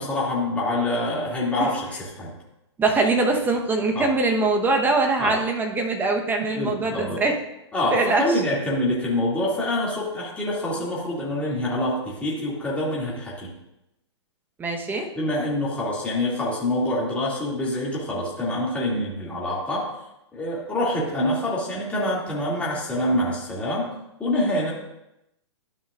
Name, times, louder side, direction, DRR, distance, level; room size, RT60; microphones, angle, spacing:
voice 1, 0.0-2.3 3.9-4.1 5.2-5.3 6.5-7.2 7.7-13.5 15.2-19.9 20.3-23.9 24.2-24.7, left 1 dB, 10° left, -6 dB, 2.4 m, -26 dB
voice 2, 2.8-7.3 7.9-8.4 14.6-15.1, right 3 dB, 15° right, 3 dB, 1.1 m, -22 dB
13.0 x 5.5 x 2.5 m, 0.87 s
hypercardioid pair, 120°, 15 cm